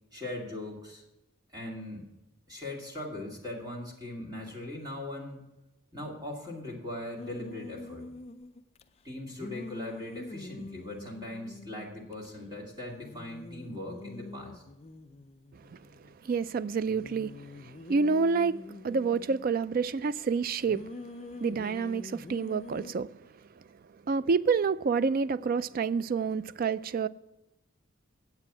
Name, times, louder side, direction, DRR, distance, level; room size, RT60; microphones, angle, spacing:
voice 1, 0.1-1.0 1.5-2.1 2.5-5.4 5.9-8.1 9.0-14.6, left 1 dB, 20° right, 2.5 m, -40 dB
sound 1, 7.2-8.8 9.4-12.3 12.5-12.6 12.9-16.3 16.9-19.6 20.7-22.9, left 2 dB, 30° left, 0.4 m, -45 dB
voice 2, 16.2-20.9 21.4-23.1 24.1-27.1, right 5 dB, 45° right, 0.3 m, -28 dB
9.5 x 7.6 x 6.0 m
head